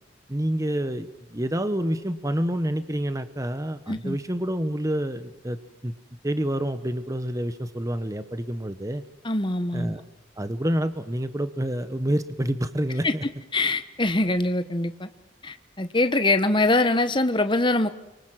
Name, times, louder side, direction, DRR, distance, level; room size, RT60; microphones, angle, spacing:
voice 1, 0.3-5.6 5.8-5.9 6.2-9.0 9.7-10.0 10.4-13.2, right 1 dB, 15° right, 11 dB, 1.0 m, -28 dB
voice 2, 9.2-9.9 13.0-13.1 13.5-15.1 15.4-17.9, left 2 dB, 25° left, 9 dB, 1.2 m, -23 dB
29.5 x 24.0 x 7.6 m, 0.94 s
head